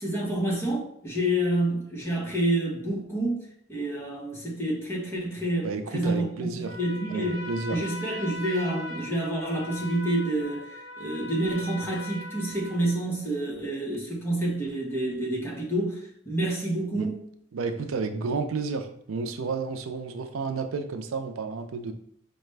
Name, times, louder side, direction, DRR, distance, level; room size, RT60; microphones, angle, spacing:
voice 1, 0.0-3.4 3.7-5.7 5.9-10.7 11.0-16.0 16.3-17.2, right 1 dB, 10° left, 0.9 m, -28 dB
voice 2, 5.6-6.7 7.1-7.8 16.9-17.1 17.5-21.9, right 4 dB, 85° right, 0.4 m, -31 dB
Trumpet, 6.6-13.1, left 1 dB, 60° left, 1.1 m, -40 dB
4.8 x 2.2 x 3.2 m
head